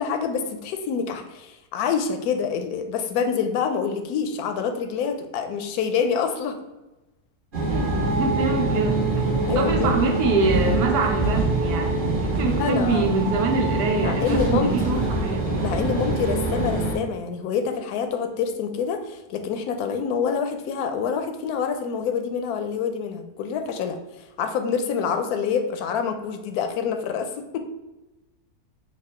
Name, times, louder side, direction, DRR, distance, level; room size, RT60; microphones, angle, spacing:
voice 1, 0.0-6.5 9.5-9.9 12.5-13.1 14.0-14.9 15.6-24.0 24.4-27.6, left 6 dB, 75° left, 6 dB, 1.0 m, -26 dB
sound 1, 7.5-16.9, right 2 dB, 35° right, 1.1 m, -24 dB
voice 2, 7.7-9.0 9.5-15.5, right 3 dB, 80° right, 2 dB, 1.2 m, -25 dB
4.3 x 2.2 x 4.2 m, 1.1 s
omnidirectional pair, 1.7 m